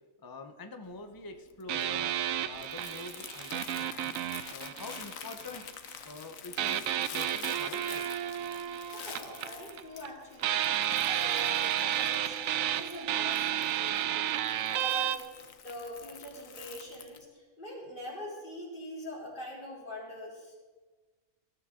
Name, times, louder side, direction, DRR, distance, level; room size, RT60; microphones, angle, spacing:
voice 1, 0.2-2.1 2.4-4.2 4.5-5.6 6.0-8.1, left 3 dB, 20° left, 6 dB, 0.9 m, -45 dB
Crumpling crinkling, 0.8-17.3, left 8 dB, 80° left, 1.3 m, -48 dB
sound 1, 1.7-5.6 6.6-10.1 10.4-15.2, right 11 dB, 90° right, 1.0 m, -32 dB
voice 2, 8.9-10.6 11.0-15.3 15.6-20.6, left 1 dB, 40° left, -5 dB, 4.8 m, -43 dB
20.0 x 13.0 x 3.9 m, 1.3 s
omnidirectional pair, 1.4 m